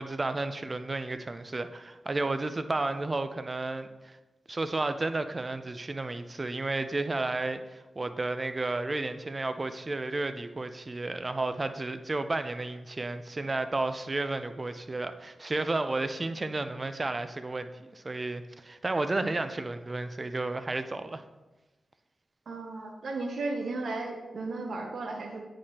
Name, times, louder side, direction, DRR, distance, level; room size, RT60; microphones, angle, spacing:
voice 1, 0.0-4.2 4.5-21.2, right 2 dB, 40° right, 10 dB, 0.5 m, -32 dB
voice 2, 22.5-25.4, right 3 dB, 75° right, 2 dB, 0.7 m, -35 dB
9.3 x 4.9 x 2.9 m, 1.1 s
cardioid pair, 55°, 0 cm